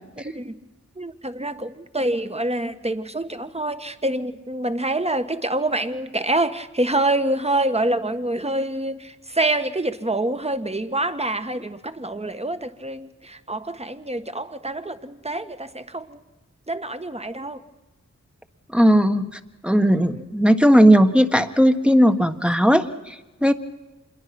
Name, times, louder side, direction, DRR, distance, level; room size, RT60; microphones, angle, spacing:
voice 1, 0.2-0.5 1.0-16.2 16.7-17.6 20.0-20.2, right 2 dB, 20° right, 10 dB, 1.6 m, -26 dB
voice 2, 18.7-19.3 19.6-23.5, equal, 5° right, 7 dB, 1.5 m, -17 dB
26.5 x 22.0 x 6.1 m, 1.1 s
cardioid pair, 40°, 29 cm